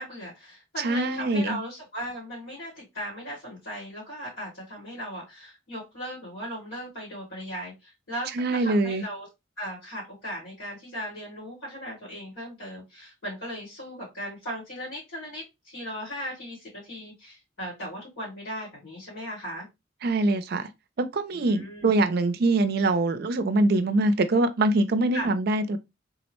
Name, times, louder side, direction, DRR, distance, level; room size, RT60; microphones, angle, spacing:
voice 1, 0.0-9.3 9.6-19.7 21.3-21.9 25.1-25.3, equal, 75° left, 2.0 m, -37 dB
voice 2, 0.8-1.6 8.3-9.0 20.0-20.7 21.1-25.8, right 2 dB, 50° right, 0.4 m, -23 dB
3.6 x 2.1 x 2.9 m
head